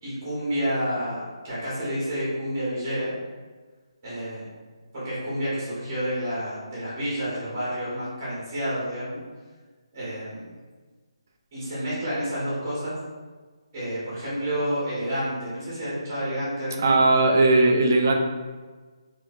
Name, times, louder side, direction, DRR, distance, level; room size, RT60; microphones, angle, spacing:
voice 1, 0.0-3.1 4.0-4.5 4.9-9.2 9.9-10.5 11.5-12.9 13.7-17.0, equal, 15° right, -9 dB, 1.3 m, -29 dB
voice 2, 16.8-18.1, right 2 dB, 30° right, 3 dB, 0.3 m, -18 dB
4.2 x 3.0 x 2.6 m, 1.4 s
hypercardioid pair, 180°, 3 cm